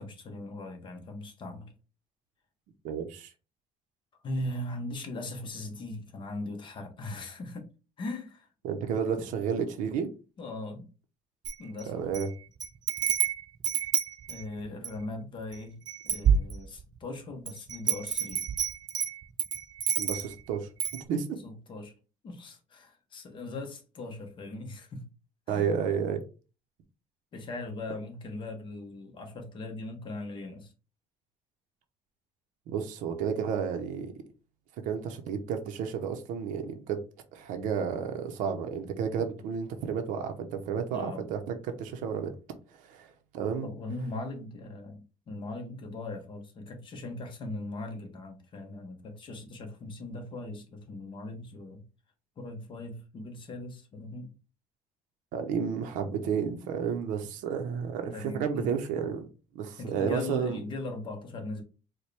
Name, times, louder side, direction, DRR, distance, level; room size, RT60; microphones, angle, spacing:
voice 1, 0.0-1.7 4.2-7.7 8.0-8.5 10.4-10.9 11.6-12.0 14.3-15.8 16.0-18.4 21.4-21.9 22.2-25.1 25.5-25.6 27.3-30.7 40.9-41.3 43.6-51.8 52.4-54.3 58.0-58.7 59.8-61.6, left 2 dB, 40° left, 0.9 m, -39 dB
voice 2, 2.8-3.3 8.6-10.1 11.9-12.3 20.0-20.7 21.1-21.4 25.5-26.2 32.7-34.1 34.8-37.0 37.3-42.3 42.8-43.7 55.3-59.3 59.5-60.6, right 7 dB, 85° right, 0.7 m, -31 dB
Wind chime, 11.4-12.3 12.6-15.0 15.5-15.6 15.9-17.0 17.5-20.4 20.8-21.0, right 7 dB, 30° right, 0.4 m, -28 dB
4.4 x 2.2 x 3.2 m
cardioid pair, 140°, 13 cm